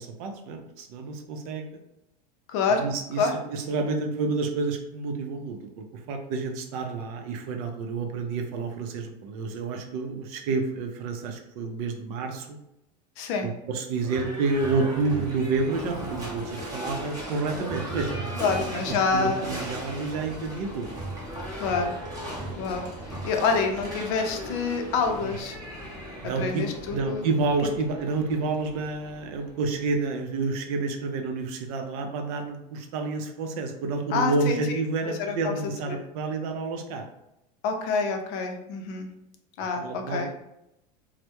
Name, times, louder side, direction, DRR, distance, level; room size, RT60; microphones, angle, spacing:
voice 1, 0.0-1.6 2.7-12.6 13.4-18.5 19.1-20.9 25.2-25.3 26.2-26.7 26.9-37.0 39.8-40.4, right 4 dB, 65° right, 4 dB, 0.5 m, -29 dB
voice 2, 2.5-2.9 3.2-3.4 13.2-13.5 18.4-19.5 21.5-22.0 22.6-22.9 23.2-25.6 26.4-27.2 34.1-35.5 35.9-36.0 37.6-39.1 39.6-40.3, left 5 dB, 55° left, 4 dB, 0.5 m, -27 dB
Livestock farm animals working animals / Bell, 14.0-29.8, equal, 15° right, 0.7 m, -37 dB
2.1 x 2.0 x 2.8 m, 0.85 s
supercardioid pair, 135°, 20 cm